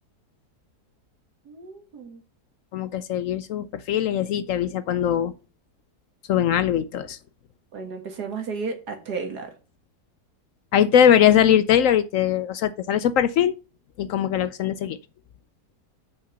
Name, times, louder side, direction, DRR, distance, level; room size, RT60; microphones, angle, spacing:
voice 1, 1.5-2.2 7.7-9.5, right 4 dB, 85° right, 2.2 m, -33 dB
voice 2, 2.7-5.3 6.3-7.2 10.7-13.5 14.0-15.0, left 9 dB, 70° left, 0.8 m, -21 dB
6.4 x 5.6 x 6.6 m
omnidirectional pair, 1.7 m